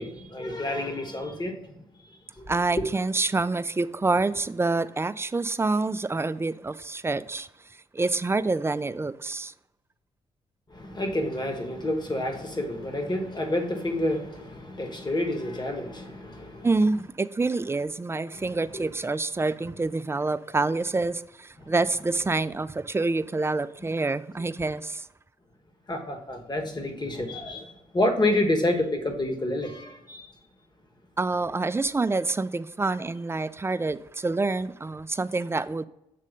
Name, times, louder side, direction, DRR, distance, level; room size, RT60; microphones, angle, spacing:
voice 1, 0.0-2.5 10.7-16.7 18.3-18.9 21.6-21.7 25.9-30.3, left 1 dB, 30° left, 1.3 m, -29 dB
voice 2, 2.5-7.5 7.9-9.5 16.6-25.1 31.2-35.8, right 3 dB, 15° right, 0.3 m, -27 dB
7.5 x 3.2 x 5.2 m
supercardioid pair, 50°, 15 cm